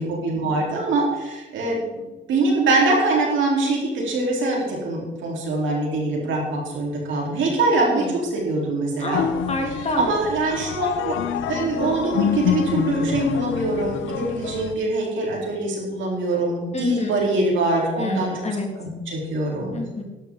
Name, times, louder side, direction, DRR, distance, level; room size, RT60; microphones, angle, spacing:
voice 1, 0.0-8.1 8.3-9.3 10.0-11.1 11.5-18.3 18.8-19.8, right 2 dB, 75° right, -2 dB, 4.1 m, -23 dB
voice 2, 7.8-8.2 9.0-10.1 16.7-17.2 18.0-18.7 19.7-20.0, left 2 dB, 35° left, 2 dB, 2.6 m, -28 dB
sound 1, 9.1-14.7, left 9 dB, 80° left, 0.8 m, -27 dB
12.5 x 11.0 x 3.9 m, 1.2 s
cardioid pair, 90°, 20 cm